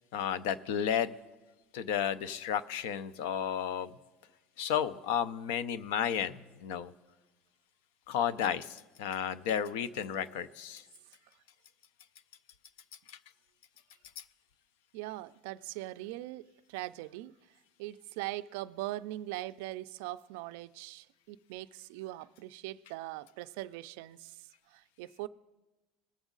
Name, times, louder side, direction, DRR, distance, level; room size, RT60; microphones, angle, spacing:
voice 1, 0.1-1.1 1.7-3.9 4.6-6.9 8.1-10.8 13.1-13.2, left 9 dB, 70° left, 0.5 m, -32 dB
voice 2, 14.9-17.3 17.8-24.4 24.7-25.3, right 16 dB, 65° right, 0.3 m, -41 dB
20.5 x 7.2 x 3.8 m
cardioid pair, 180°, 0 cm